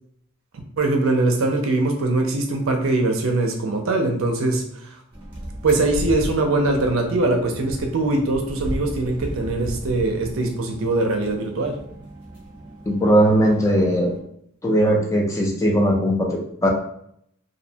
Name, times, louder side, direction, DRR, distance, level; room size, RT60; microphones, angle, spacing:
voice 1, 0.8-5.0 5.6-11.8, right 2 dB, 65° right, 3 dB, 0.5 m, -22 dB
sound 1, 5.1-14.2, equal, 25° right, 0.7 m, -35 dB
voice 2, 12.9-14.1 14.6-16.7, equal, 15° left, -1 dB, 0.3 m, -19 dB
2.6 x 2.1 x 2.7 m, 0.69 s
head